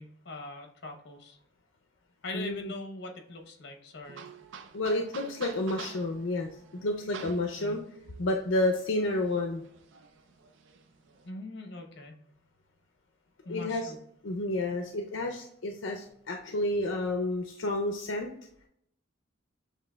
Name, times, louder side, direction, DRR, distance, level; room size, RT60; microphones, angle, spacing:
voice 1, 0.0-1.4 2.2-4.3 7.6-7.8 11.2-12.2 13.4-14.0, left 2 dB, 65° left, 4 dB, 0.9 m, -42 dB
voice 2, 2.3-2.7 4.7-7.8 8.2-9.6 13.5-13.9 14.2-18.3, left 2 dB, 85° left, 3 dB, 0.5 m, -30 dB
sound 1, 4.0-11.3, right 6 dB, 70° right, 0.4 m, -48 dB
7.3 x 3.1 x 2.2 m, 0.70 s
head